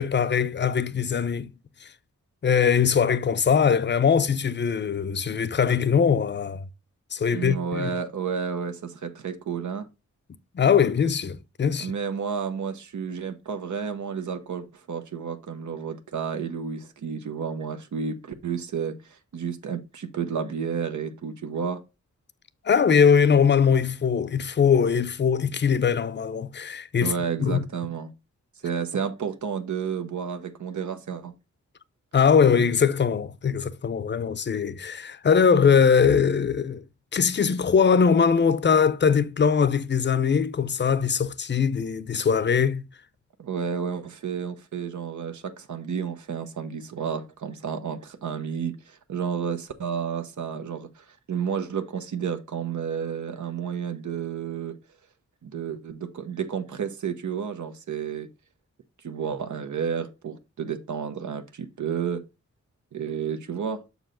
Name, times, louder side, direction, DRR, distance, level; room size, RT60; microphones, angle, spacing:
voice 1, 0.0-1.5 2.4-6.7 7.1-7.9 10.5-11.9 22.6-27.1 27.4-27.6 32.1-36.8 37.1-42.8, left 6 dB, 40° left, 0.5 m, -21 dB
voice 2, 7.3-9.9 11.8-21.8 27.0-28.1 28.6-31.3 43.4-54.8 55.4-58.3 59.0-62.2 62.9-63.8, right 7 dB, 85° right, 0.9 m, -31 dB
6.6 x 4.7 x 3.7 m
wide cardioid pair, 110°, 29 cm